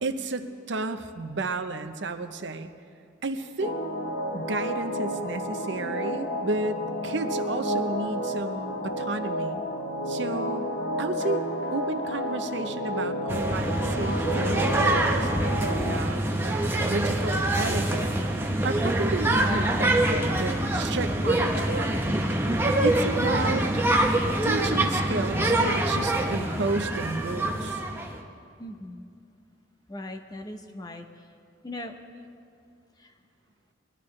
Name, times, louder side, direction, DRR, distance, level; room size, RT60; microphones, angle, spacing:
voice 1, 0.0-2.7 3.2-3.8 4.3-9.6 10.1-10.7 11.0-18.1 18.6-22.0 22.8-23.7 24.4-27.8, right 3 dB, 65° right, 8 dB, 0.7 m, -32 dB
sound 1, 3.6-16.0, equal, 60° left, 0.9 m, -31 dB
sound 2, 13.3-28.2, right 1 dB, 10° right, 0.9 m, -25 dB
voice 2, 28.6-29.0 29.9-31.1 31.6-31.9 33.0-33.1, left 1 dB, 20° left, 6 dB, 0.7 m, -39 dB
21.0 x 12.5 x 3.2 m, 2.4 s
head